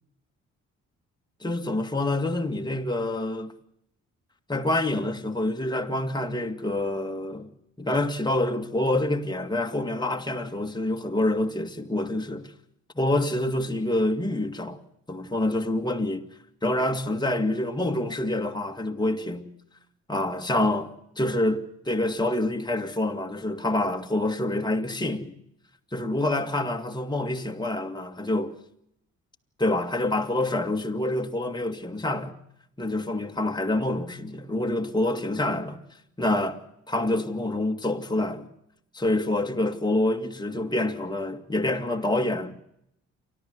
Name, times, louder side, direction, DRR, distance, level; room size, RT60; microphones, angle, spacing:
voice 1, 1.4-3.5 4.5-7.5 7.8-12.5 13.0-14.8 15.1-16.2 16.6-19.5 20.1-25.3 25.9-28.5 29.6-32.4 32.8-35.8 36.2-36.6 36.9-38.5 38.9-42.6, left 1 dB, 15° left, 2.2 m, -27 dB
29.0 x 13.0 x 8.0 m
cardioid pair, 90°, 30 cm